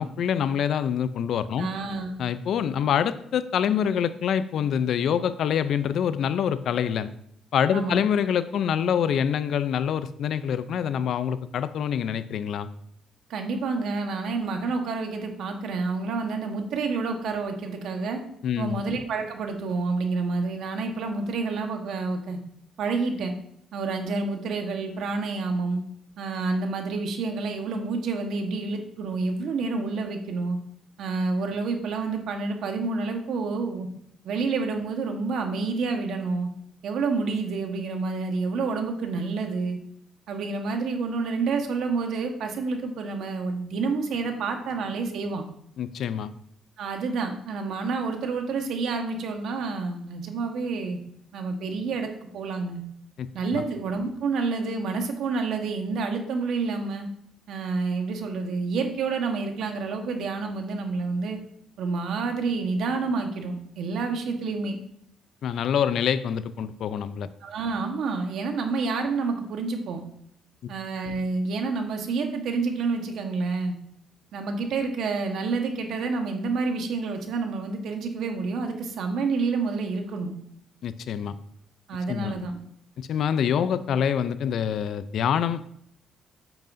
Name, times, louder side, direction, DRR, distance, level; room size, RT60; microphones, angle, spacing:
voice 1, 0.0-1.7 2.2-7.1 7.5-12.7 18.4-18.8 45.8-46.3 53.2-53.6 65.4-67.3 80.8-81.3 82.1-82.3 83.0-85.6, left 8 dB, 70° left, 14 dB, 0.5 m, -26 dB
voice 2, 1.6-2.1 7.7-8.0 13.3-18.2 18.6-22.4 22.8-23.3 23.7-25.8 26.2-30.6 31.0-33.9 34.2-36.5 36.8-39.8 40.3-45.4 46.8-51.0 51.3-52.8 53.3-57.1 57.5-61.4 61.8-64.8 67.4-70.0 70.7-73.7 74.3-80.3 81.9-82.6, right 4 dB, 75° right, 4 dB, 1.3 m, -28 dB
8.8 x 7.9 x 2.7 m, 0.70 s
cardioid pair, 90°, 0 cm